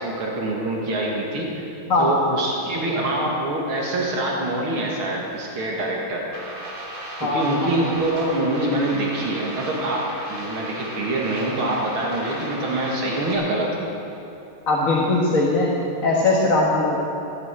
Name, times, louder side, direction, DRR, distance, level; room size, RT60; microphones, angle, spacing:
voice 1, 0.0-1.7 2.0-6.2 7.2-13.9, right 1 dB, 80° right, -2 dB, 2.8 m, -25 dB
sound 1, 6.3-13.3, right 1 dB, 45° right, 2.9 m, -36 dB
voice 2, 14.7-15.7 16.0-17.0, left 2 dB, 40° left, -4 dB, 1.9 m, -19 dB
15.0 x 10.5 x 8.2 m, 2.8 s
omnidirectional pair, 2.3 m